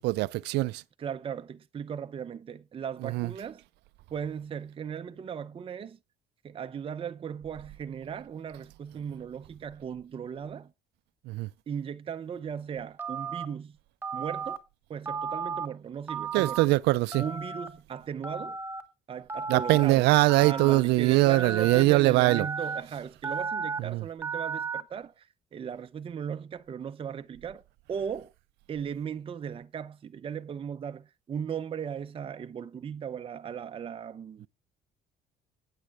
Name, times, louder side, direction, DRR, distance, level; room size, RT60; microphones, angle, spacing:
voice 1, 0.0-0.8 3.1-3.3 11.3-11.5 16.3-17.2 19.5-22.5 23.9-24.0, right 19 dB, 85° right, 0.4 m, -22 dB
voice 2, 1.0-3.6 4.1-6.0 6.4-10.7 11.7-13.8 14.1-14.6 14.9-16.7 17.2-18.6 19.1-20.1 20.4-27.6 27.9-28.3 28.7-34.5, right 7 dB, 30° right, 0.6 m, -37 dB
Telephone, 13.0-13.5 14.0-14.6 15.1-15.7 16.1-16.7 17.1-17.7 18.2-18.8 19.3-19.8 20.3-20.8 21.3-21.8 22.2-22.8 23.2-23.8 24.2-24.8, right 5 dB, 15° right, 1.1 m, -34 dB
8.8 x 8.6 x 4.6 m
cardioid pair, 110°, 17 cm